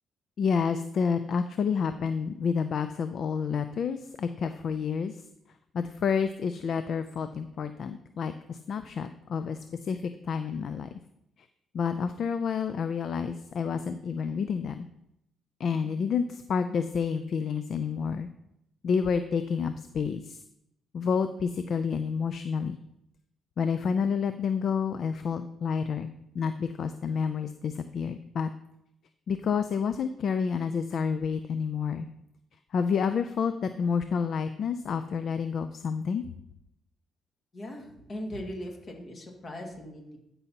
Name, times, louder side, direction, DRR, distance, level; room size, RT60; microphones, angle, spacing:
voice 1, 0.4-5.2 5.7-10.9 11.7-14.9 15.6-18.3 18.8-20.4 20.9-22.8 23.6-28.5 29.3-32.1 32.7-36.2, left 6 dB, 60° left, 10 dB, 0.4 m, -29 dB
voice 2, 37.5-40.2, equal, 40° left, 1 dB, 2.1 m, -39 dB
12.0 x 5.4 x 2.9 m, 0.79 s
cardioid pair, 90°, 0 cm